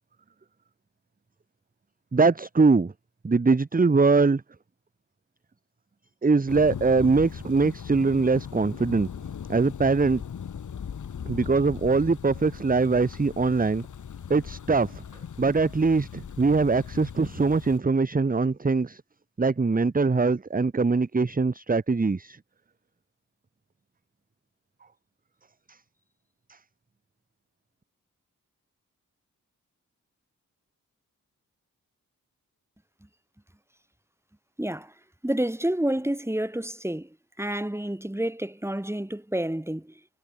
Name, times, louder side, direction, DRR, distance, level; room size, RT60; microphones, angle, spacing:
voice 1, 2.1-2.9 3.2-4.4 6.2-9.1 9.5-10.2 11.3-13.9 14.3-15.0 15.4-19.0 19.4-22.4 25.7-25.8 26.5-26.6, right 4 dB, 25° right, 1.0 m, -22 dB
Thunder, 6.5-17.8, left 7 dB, 60° left, 1.1 m, -39 dB
voice 2, 34.6-34.9 35.2-39.9, right 1 dB, 10° right, 2.6 m, -29 dB
cardioid pair, 50°, 33 cm